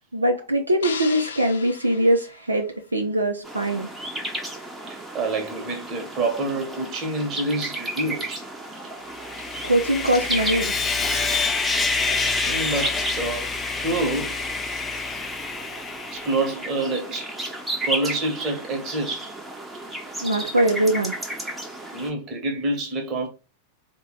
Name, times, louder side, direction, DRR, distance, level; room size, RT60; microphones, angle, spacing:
voice 1, 0.1-2.7 2.9-3.9 9.6-10.7 20.2-21.1, right 1 dB, 80° right, 0.5 m, -22 dB
sound 1, 0.8-3.1, left 6 dB, 65° left, 0.5 m, -37 dB
sound 2, 3.4-22.1, right 1 dB, 10° right, 0.8 m, -34 dB
voice 2, 4.9-8.4 8.7-8.8 9.4-9.5 12.4-13.5 13.8-14.4 16.1-17.3 17.8-19.3 21.9-23.3, right 2 dB, 30° right, 1.1 m, -27 dB
Sawing, 9.1-16.5, left 4 dB, 15° left, 0.5 m, -27 dB
4.2 x 2.2 x 3.7 m
figure-of-eight pair, 90°, 0 cm